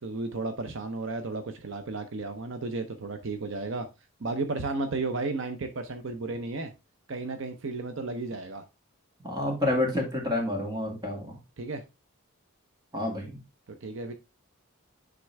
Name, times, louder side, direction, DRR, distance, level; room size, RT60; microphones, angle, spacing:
voice 1, 0.0-3.9 4.2-6.7 7.1-8.6 11.6-11.8 13.8-14.1, right 3 dB, 60° right, 0.7 m, -33 dB
voice 2, 9.2-11.3 12.9-13.4, left 1 dB, 20° right, 2.2 m, -29 dB
9.6 x 3.7 x 3.3 m
head